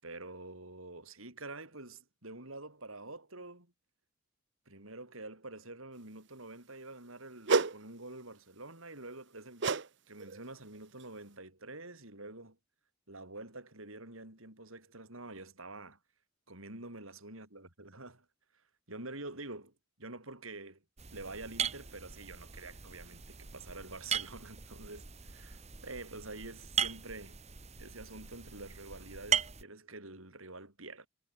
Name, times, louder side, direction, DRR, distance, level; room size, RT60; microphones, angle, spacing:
voice 1, 0.0-3.7 4.7-9.7 10.1-12.6 13.1-16.0 16.5-18.2 18.9-19.7 20.0-20.8 21.1-27.4 27.8-31.1, right 2 dB, 75° right, 7.2 m, -47 dB
sound 1, 7.5-7.8 9.6-9.9 10.2-10.5 11.0-11.1, right 4 dB, 55° right, 0.9 m, -29 dB
sound 2, 21.0-29.6, right 7 dB, 30° right, 1.6 m, -38 dB
head